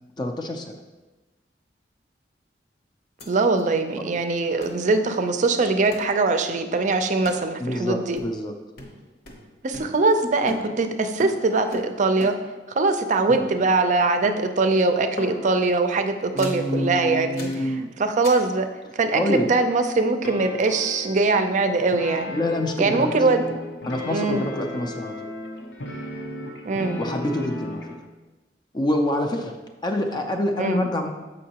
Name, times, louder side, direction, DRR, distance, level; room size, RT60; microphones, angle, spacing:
voice 1, 0.2-0.8 7.6-8.5 16.3-17.9 19.1-19.5 22.3-23.1 23.9-25.3 27.0-27.8 28.7-29.6 29.8-31.1, left 1 dB, 25° left, 4 dB, 0.4 m, -26 dB
sound 1, 3.2-3.3 3.6-3.7 4.6-4.8 5.9-6.2 7.2-7.5 8.2-8.5 8.8-10.2 10.5-12.6 13.3-13.9 14.2-14.7 15.2-15.7 16.4-16.7 17.4-17.7 18.2-18.5, left 2 dB, 60° left, 0.9 m, -38 dB
voice 2, 3.3-8.2 9.6-12.3 12.7-17.5 18.0-18.7 18.9-22.3 22.8-23.4 24.1-24.4 26.7-27.0 30.6-30.8, right 3 dB, 45° right, 8 dB, 0.5 m, -22 dB
sound 2, 20.2-28.0, left 2 dB, 90° left, 0.8 m, -34 dB
7.3 x 5.2 x 2.9 m, 1.2 s
head